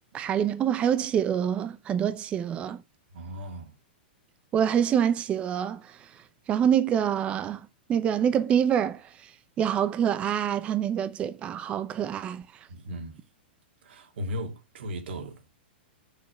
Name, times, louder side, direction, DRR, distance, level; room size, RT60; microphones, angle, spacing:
voice 1, 0.1-2.8 4.5-6.1 6.5-9.3 9.6-12.7, right 9 dB, 20° right, 0.6 m, -26 dB
voice 2, 3.1-3.8 12.7-13.2 13.8-15.4, equal, 85° right, 2.4 m, -36 dB
6.5 x 6.2 x 6.0 m
supercardioid pair, 155°, 6 cm